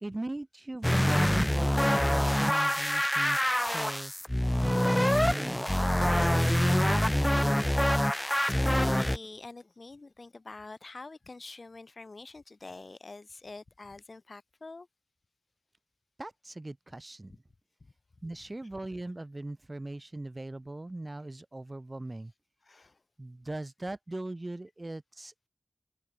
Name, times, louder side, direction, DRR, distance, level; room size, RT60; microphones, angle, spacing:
voice 1, 0.0-3.4 3.7-4.1 4.6-7.6 16.2-17.4 18.2-22.3 23.2-25.5, right 2 dB, 40° right, 0.8 m, -40 dB
sound 1, 0.8-9.2, left 1 dB, 10° left, 0.5 m, -25 dB
voice 2, 8.5-14.9 17.8-17.9 22.6-23.0, left 3 dB, 65° left, 3.2 m, -45 dB
cardioid pair, 45°, 0 cm